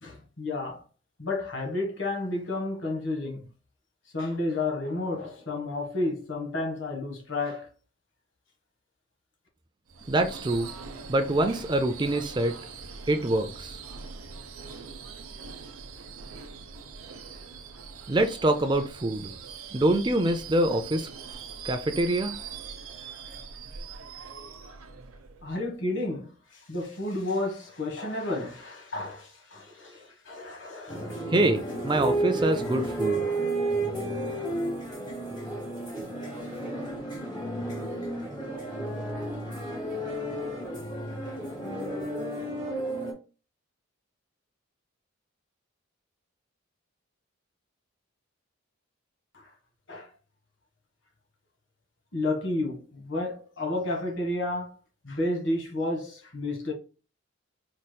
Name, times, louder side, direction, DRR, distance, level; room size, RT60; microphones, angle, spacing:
voice 1, 0.0-0.8 1.2-3.5 4.1-7.7 25.4-31.3 49.3-49.5 49.9-50.1 52.1-54.7 55.0-56.7, left 2 dB, 60° left, 1.5 m, -31 dB
Subway metro underground / Screech, 9.9-25.8, right 5 dB, 85° right, 0.8 m, -42 dB
voice 2, 10.1-10.7 11.1-12.6 13.1-13.8 18.1-19.3 19.7-21.1 21.6-22.4 31.3-33.3, right 1 dB, 20° right, 0.4 m, -25 dB
sound 1, 30.9-43.1, right 1 dB, 20° left, 2.3 m, -32 dB
4.9 x 4.2 x 2.2 m
head